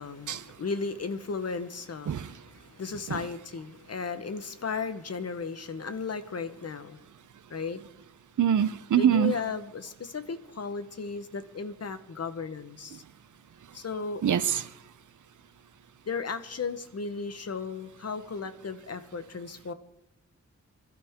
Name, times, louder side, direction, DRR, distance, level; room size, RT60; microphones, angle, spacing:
voice 1, 0.0-7.0 7.5-7.8 9.0-13.0 13.7-14.2 16.1-19.7, left 5 dB, 55° left, 1.2 m, -35 dB
voice 2, 8.4-9.3 14.2-14.6, right 9 dB, 80° right, 0.7 m, -24 dB
27.0 x 12.5 x 3.7 m
wide cardioid pair, 105°, 30 cm